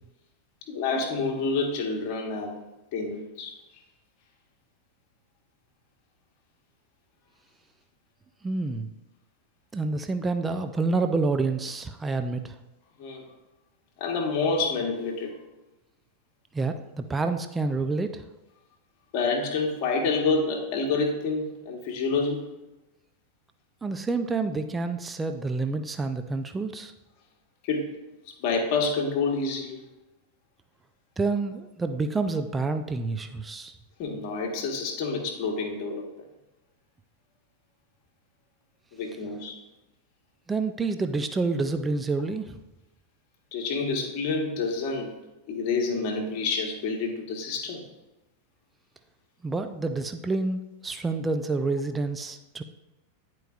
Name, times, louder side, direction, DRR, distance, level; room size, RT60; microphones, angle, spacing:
voice 1, 0.7-2.6 2.9-3.5 13.0-13.2 14.0-15.3 19.1-22.4 27.6-27.9 28.4-29.8 34.0-36.0 38.9-39.5 43.5-45.1 45.5-47.8, left 4 dB, 45° left, 1 dB, 1.2 m, -28 dB
voice 2, 8.4-8.9 9.7-12.6 16.5-18.2 23.8-26.9 31.2-33.8 40.5-42.6 49.4-52.6, right 3 dB, 15° right, 8 dB, 0.4 m, -28 dB
10.0 x 4.5 x 2.3 m, 1.0 s
figure-of-eight pair, 90°, 0 cm